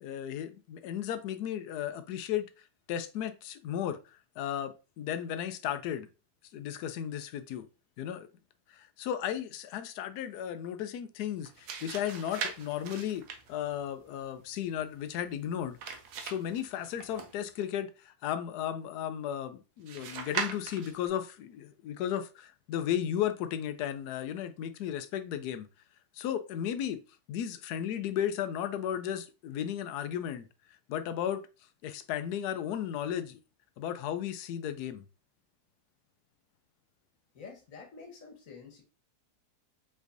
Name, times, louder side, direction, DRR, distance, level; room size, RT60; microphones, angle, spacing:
voice 1, 0.0-2.4 2.9-4.0 4.4-6.1 6.5-7.7 8.0-8.3 8.7-15.8 16.2-25.7 26.2-27.0 27.3-30.5 30.9-31.5 31.8-33.4 33.8-35.0, left 10 dB, 80° left, 1.1 m, -34 dB
sound 1, 11.3-17.7 19.9-21.1, right 6 dB, 75° right, 1.3 m, -41 dB
voice 2, 37.3-38.8, left 5 dB, 55° left, 1.6 m, -48 dB
5.3 x 3.6 x 2.6 m
omnidirectional pair, 1.7 m